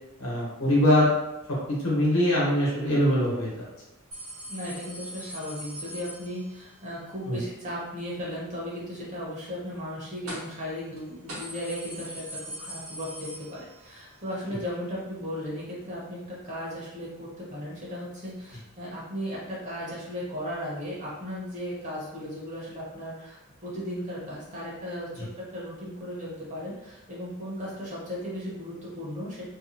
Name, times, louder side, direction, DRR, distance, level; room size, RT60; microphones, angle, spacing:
voice 1, 0.2-1.1 1.7-3.5 7.3-7.4 25.2-25.3, left 1 dB, 65° left, -6 dB, 1.0 m, -23 dB
sound 1, 4.1-6.8 10.3-10.7 11.0-11.1 11.3-14.0 14.3-14.4 15.5-15.6, equal, 70° right, 1.0 m, -41 dB
voice 2, 4.5-12.2 12.6-29.5, equal, 35° right, -6 dB, 0.8 m, -36 dB
2.6 x 2.3 x 2.6 m, 0.94 s
head